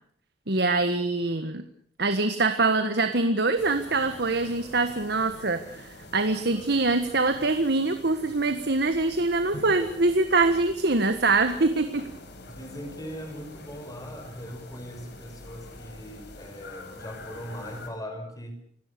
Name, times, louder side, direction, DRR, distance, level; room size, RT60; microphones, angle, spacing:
voice 1, 0.5-1.6 2.0-12.1, right 3 dB, 60° right, 8 dB, 1.6 m, -24 dB
sound 1, 3.6-17.9, left 2 dB, 65° left, 5.3 m, -45 dB
voice 2, 12.5-18.5, equal, 20° left, 5 dB, 5.9 m, -40 dB
29.5 x 18.0 x 6.8 m, 0.65 s
head